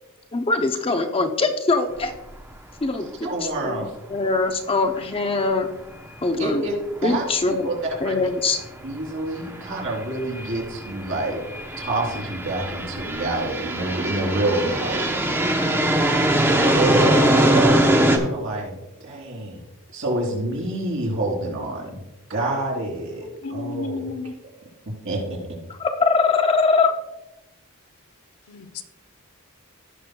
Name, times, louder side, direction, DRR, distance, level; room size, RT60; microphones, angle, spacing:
voice 1, 0.3-2.1 2.8-3.1 3.4-3.8 4.1-5.7 6.2-6.6 7.0-7.7 8.0-8.6 25.8-26.9, left 3 dB, 25° left, 5 dB, 0.6 m, -22 dB
sound 1, 2.0-2.2 2.5-2.6 6.6-6.7 7.8-8.0 8.6-18.2, right 1 dB, 10° right, 0.8 m, -22 dB
voice 2, 3.2-3.8 6.4-6.7 7.0-8.2 8.8-11.4 11.8-15.1 16.6-18.8 19.0-19.6 19.9-22.0 22.3-24.1 25.0-25.4, right 2 dB, 60° right, -3 dB, 3.2 m, -27 dB
voice 3, 23.2-24.3 28.5-28.8, left 3 dB, 70° left, 7 dB, 0.7 m, -33 dB
16.5 x 6.2 x 2.3 m, 0.97 s
head